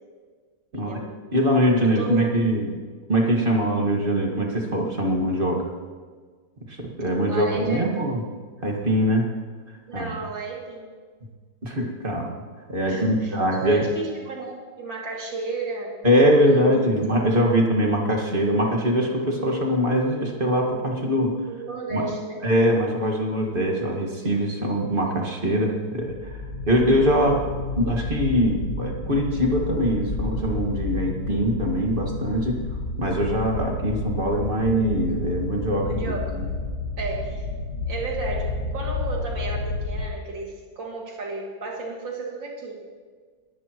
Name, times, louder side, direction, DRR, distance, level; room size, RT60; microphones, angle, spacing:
voice 1, 0.7-1.1 1.8-2.4 7.3-8.2 9.9-10.9 12.9-16.7 17.1-17.4 21.5-22.4 35.8-36.3 37.0-37.5 37.9-42.7, right 3 dB, 70° right, -2 dB, 3.3 m, -33 dB
voice 2, 1.3-2.8 3.1-5.7 6.6-8.2 8.6-9.3 9.9-10.1 11.6-12.3 12.7-13.9 16.0-21.4 21.9-22.1 22.4-26.4 26.7-27.5 27.8-32.6 33.0-36.5, equal, 30° right, 0 dB, 1.9 m, -22 dB
sound 1, 26.0-40.1, left 2 dB, 50° left, 1.8 m, -31 dB
20.5 x 16.0 x 3.1 m, 1.5 s
omnidirectional pair, 2.1 m